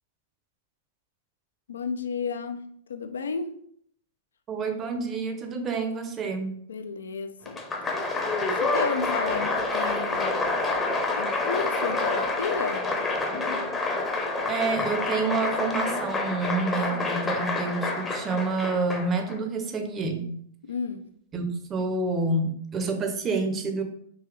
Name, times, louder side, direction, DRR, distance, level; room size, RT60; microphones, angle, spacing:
voice 1, 1.7-2.6 2.9-3.5 6.7-7.6 8.6-10.5 11.2-12.9 20.7-21.0, left 5 dB, 90° left, 9 dB, 0.4 m, -32 dB
voice 2, 4.5-6.5 14.5-20.4 21.3-23.8, right 3 dB, 25° right, 6 dB, 0.7 m, -28 dB
Applause, 7.5-19.4, left 3 dB, 20° left, 0.7 m, -28 dB
3.8 x 2.8 x 3.2 m, 0.65 s
hypercardioid pair, 120°, 0 cm